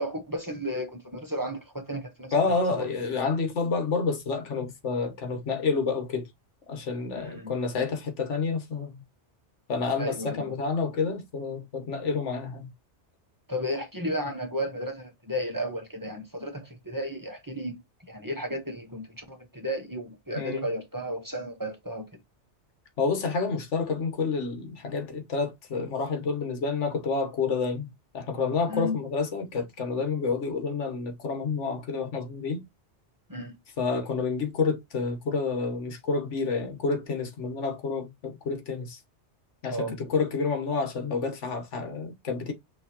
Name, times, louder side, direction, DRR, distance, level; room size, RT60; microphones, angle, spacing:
voice 1, 0.0-2.9 7.1-7.5 10.0-10.5 13.5-17.8 18.1-22.1 28.7-29.0 33.3-33.5 39.7-40.0, equal, 20° right, 1.1 m, -33 dB
voice 2, 2.3-6.3 6.7-9.0 9.7-12.7 20.3-20.6 23.0-32.7 33.8-39.0 39.6-42.5, left 4 dB, 90° left, 1.4 m, -29 dB
6.0 x 3.0 x 2.8 m
omnidirectional pair, 1.2 m